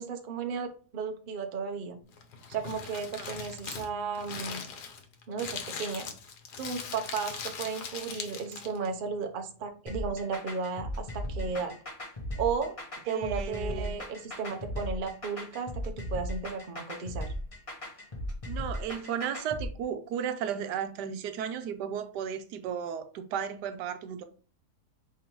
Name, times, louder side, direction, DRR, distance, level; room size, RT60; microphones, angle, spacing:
voice 1, 0.0-2.0 2.5-4.6 5.3-6.1 6.6-11.7 12.4-12.8 13.1-17.3, right 5 dB, 55° right, 0.6 m, -34 dB
Crumpling crinkling, 2.1-8.9, left 6 dB, 75° left, 1.4 m, -40 dB
sound 1, 9.9-19.7, equal, 25° left, 1.0 m, -37 dB
voice 2, 13.1-13.9 18.5-24.2, right 8 dB, 85° right, 1.2 m, -34 dB
5.2 x 3.4 x 2.9 m
omnidirectional pair, 1.8 m